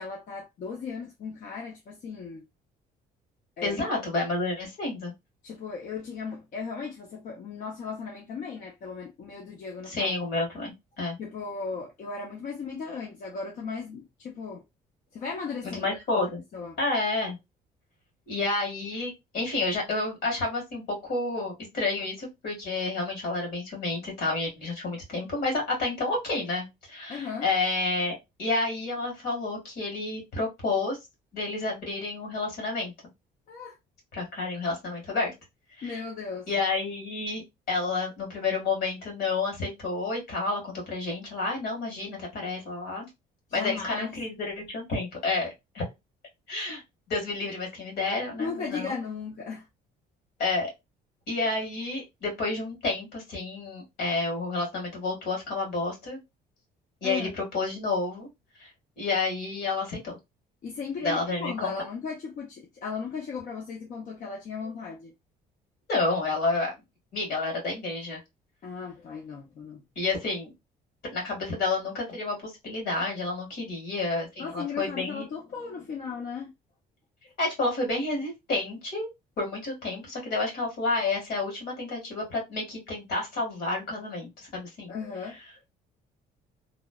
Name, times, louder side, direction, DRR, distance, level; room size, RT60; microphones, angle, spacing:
voice 1, 0.0-2.4 3.6-4.0 5.4-10.1 11.2-14.6 15.1-16.8 27.1-27.5 33.5-33.7 35.8-36.5 43.5-44.2 46.7-46.8 48.4-49.7 57.0-57.3 60.6-65.1 68.6-69.9 74.4-76.5 84.9-85.4, left 5 dB, 50° left, 0.6 m, -36 dB
voice 2, 3.6-5.1 9.9-11.2 15.6-16.4 16.8-17.4 18.3-31.0 31.3-32.9 34.1-35.3 35.8-36.0 36.5-37.4 37.7-43.1 43.5-45.8 46.5-46.8 47.1-48.9 50.4-50.7 51.3-56.2 57.0-58.3 58.6-58.7 59.0-60.2 61.0-61.7 65.9-66.7 67.1-68.2 70.0-70.5 71.0-75.3 77.4-79.1 79.4-84.9, left 3 dB, 65° left, 1.8 m, -30 dB
3.0 x 2.0 x 2.2 m
cardioid pair, 110°, 17 cm